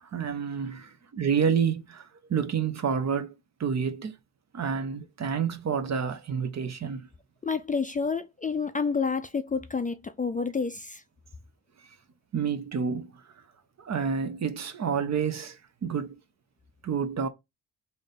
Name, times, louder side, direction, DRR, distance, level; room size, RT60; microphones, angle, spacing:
voice 1, 0.0-3.3 3.6-4.2 4.5-7.1 12.3-13.1 13.8-16.2 16.8-17.3, right 6 dB, 45° right, 0.8 m, -29 dB
voice 2, 7.4-11.0, left 5 dB, 20° left, 0.4 m, -29 dB
3.4 x 2.7 x 4.0 m
supercardioid pair, 60°, 38 cm